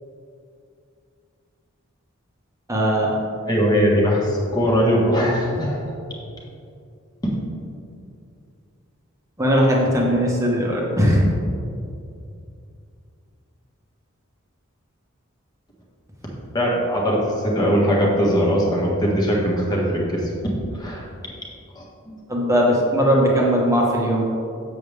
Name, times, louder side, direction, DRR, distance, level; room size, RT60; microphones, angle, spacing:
voice 1, 2.7-3.1 9.4-11.2 22.3-24.2, equal, 15° right, -3 dB, 1.3 m, -19 dB
voice 2, 3.5-5.8 16.5-17.2 17.4-21.1 21.7-22.1, equal, 20° left, -3 dB, 1.5 m, -20 dB
7.8 x 7.0 x 3.5 m, 2.5 s
head